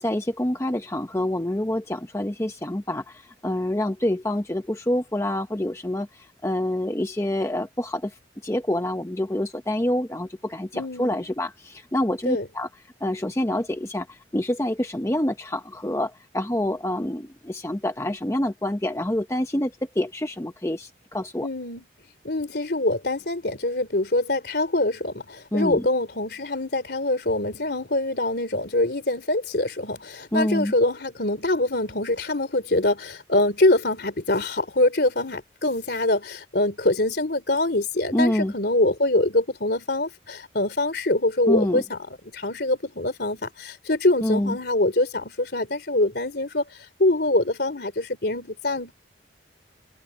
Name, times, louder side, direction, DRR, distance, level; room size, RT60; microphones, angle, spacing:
voice 1, 0.0-8.1 8.4-12.7 13.0-21.5 25.5-25.9 30.3-30.7 38.1-38.5 41.5-41.8 44.2-44.6, left 1 dB, 15° left, 0.7 m, -27 dB
voice 2, 10.7-11.2 12.2-12.5 21.4-21.8 22.2-42.0 42.3-46.6 47.0-48.9, left 2 dB, 55° left, 3.4 m, -24 dB
head